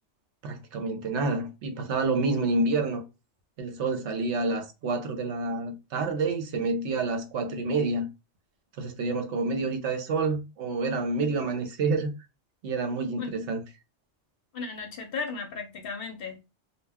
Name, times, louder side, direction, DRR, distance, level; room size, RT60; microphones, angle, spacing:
voice 1, 0.4-3.0 3.6-8.1 8.8-12.1 12.6-13.6, right 3 dB, 75° right, 0.9 m, -28 dB
voice 2, 14.5-16.4, left 4 dB, 60° left, 0.7 m, -35 dB
2.2 x 2.2 x 3.4 m
omnidirectional pair, 1.2 m